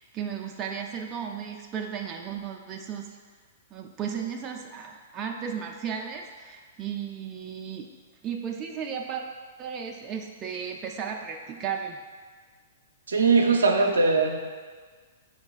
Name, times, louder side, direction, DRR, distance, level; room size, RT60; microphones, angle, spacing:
voice 1, 0.1-3.2 3.7-7.9 8.2-9.2 9.6-12.0, right 7 dB, 25° right, 1 dB, 0.4 m, -34 dB
voice 2, 13.1-14.3, right 4 dB, 80° right, 2 dB, 0.5 m, -20 dB
5.3 x 4.0 x 2.4 m, 1.5 s
hypercardioid pair, 115°, 0 cm